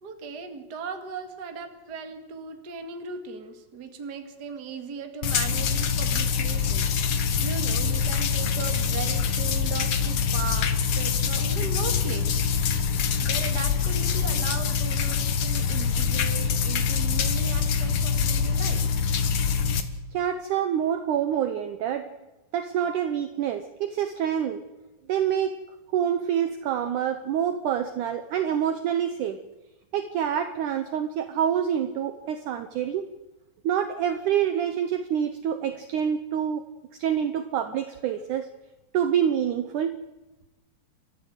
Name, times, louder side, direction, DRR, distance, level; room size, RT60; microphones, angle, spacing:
voice 1, 0.0-12.6 13.2-18.8, right 5 dB, 35° right, 5 dB, 1.8 m, -38 dB
sound 1, 5.2-19.8, left 6 dB, 60° left, 1.8 m, -25 dB
voice 2, 20.1-22.1 22.5-24.6 25.1-25.6 25.9-29.4 29.9-33.1 33.6-36.6 36.9-38.5 38.9-39.9, right 9 dB, 70° right, 9 dB, 2.0 m, -26 dB
29.5 x 13.5 x 8.1 m, 1.0 s
omnidirectional pair, 4.4 m